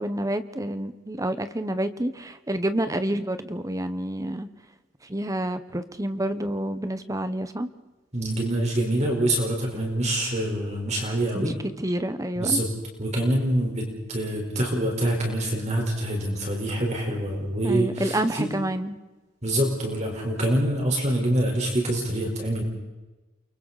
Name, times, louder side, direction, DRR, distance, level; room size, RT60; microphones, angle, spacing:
voice 1, 0.0-4.5 5.1-7.7 11.3-12.6 17.6-19.0, right 1 dB, 15° right, 10 dB, 1.0 m, -28 dB
voice 2, 8.1-11.5 12.4-12.7 13.0-18.5 19.4-22.6, right 1 dB, 35° right, 0 dB, 4.5 m, -25 dB
29.5 x 24.0 x 4.2 m, 1.2 s
head